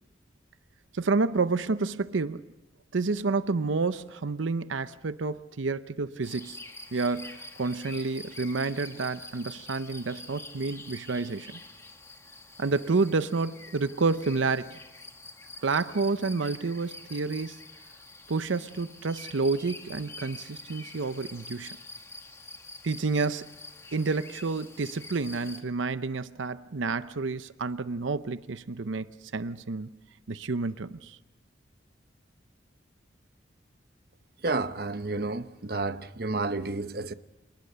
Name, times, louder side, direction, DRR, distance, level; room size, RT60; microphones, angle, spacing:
voice 1, 0.9-2.4 2.9-6.6 6.9-11.6 12.6-14.8 15.6-17.6 18.3-21.8 22.8-23.5 23.9-29.9 30.3-31.2, right 4 dB, 85° right, 0.7 m, -29 dB
sound 1, 6.2-25.6, left 2 dB, 15° left, 1.6 m, -46 dB
voice 2, 34.4-37.1, right 3 dB, 55° right, 0.9 m, -31 dB
28.0 x 20.0 x 6.8 m
head